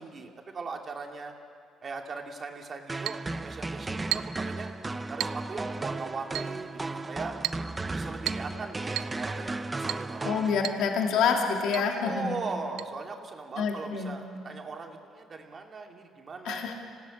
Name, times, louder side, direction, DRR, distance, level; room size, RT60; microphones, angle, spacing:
voice 1, 0.0-1.3 1.8-4.7 5.1-6.7 7.1-7.3 7.9-10.4 12.0-16.7, right 4 dB, 35° right, 2 dB, 2.5 m, -39 dB
sound 1, 2.9-11.0, right 2 dB, 15° right, 0.8 m, -35 dB
Chink clink, 3.1-3.3 4.1-4.4 5.2-5.4 6.4-6.6 7.4-7.7 8.3-8.5 9.0-9.2 9.9-10.1 10.6-10.9 11.1-11.2 11.7-11.9 12.8-12.9, right 14 dB, 80° right, 0.5 m, -33 dB
voice 2, 10.2-12.3 13.6-14.1 16.4-16.7, left 6 dB, 80° left, 1 dB, 2.5 m, -27 dB
27.0 x 17.5 x 8.6 m, 2.3 s
cardioid pair, 120°, 0 cm